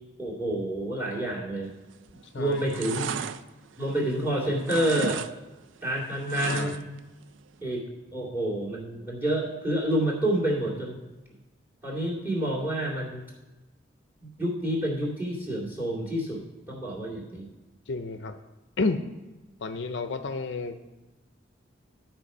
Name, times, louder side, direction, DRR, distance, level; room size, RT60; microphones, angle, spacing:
voice 1, 0.2-1.7 2.4-3.1 3.8-5.2 5.8-6.8 7.6-7.8 8.1-11.0 11.8-13.2 14.2-17.5, right 1 dB, 10° right, -4 dB, 2.2 m, -28 dB
sound 1, 1.9-2.2 2.5-4.3 4.6-5.3 5.6-7.0 7.3-7.4, right 6 dB, 80° right, 0.4 m, -35 dB
voice 2, 6.5-6.8 17.9-18.4 18.8-19.0 19.6-20.8, left 3 dB, 65° left, 9 dB, 0.5 m, -31 dB
13.0 x 4.5 x 5.4 m, 1.1 s
head